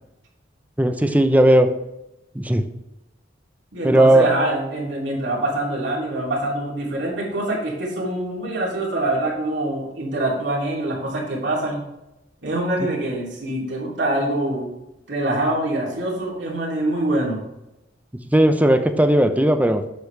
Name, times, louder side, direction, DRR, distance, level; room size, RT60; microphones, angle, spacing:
voice 1, 0.8-1.7 2.3-2.6 3.8-4.3 18.3-19.8, right 1 dB, 10° right, 8 dB, 0.6 m, -16 dB
voice 2, 3.7-11.8 12.4-14.7 15.1-17.4, right 1 dB, 75° right, -3 dB, 2.9 m, -24 dB
8.2 x 6.8 x 3.3 m, 0.93 s
head